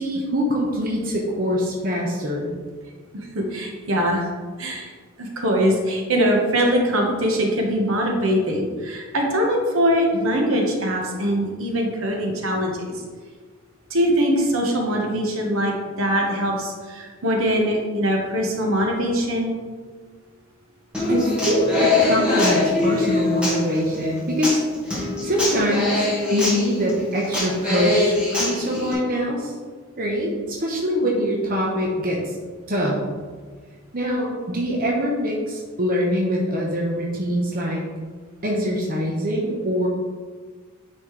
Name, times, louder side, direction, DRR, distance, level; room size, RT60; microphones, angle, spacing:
voice 1, 0.0-2.5 21.1-24.6 25.2-29.5 30.0-32.3 32.7-33.0 33.9-37.8 38.4-39.9, equal, 40° right, -2 dB, 0.9 m, -24 dB
voice 2, 3.3-4.3 4.6-4.9 5.2-12.7 13.9-19.5, equal, 70° right, 0 dB, 1.2 m, -22 dB
Human voice / Acoustic guitar, 20.9-28.9, left 2 dB, 5° right, 1.7 m, -23 dB
9.7 x 4.3 x 3.2 m, 1.5 s
head